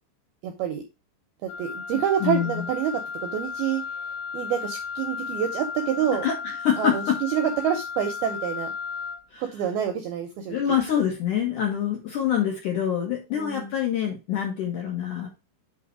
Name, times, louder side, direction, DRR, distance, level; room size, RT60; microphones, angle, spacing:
voice 1, 0.4-0.8 1.4-3.8 4.3-6.3 6.8-8.7 9.4-10.8 13.3-13.7, right 9 dB, 80° right, 5 dB, 2.2 m, -27 dB
Wind instrument woodwind instrument, 1.5-9.3, left 6 dB, 85° left, 3.0 m, -34 dB
voice 2, 2.2-2.6 6.2-7.2 9.3-9.4 10.5-15.3, left 9 dB, 60° left, 0 dB, 2.3 m, -25 dB
8.2 x 4.0 x 4.7 m, 0.27 s
omnidirectional pair, 5.5 m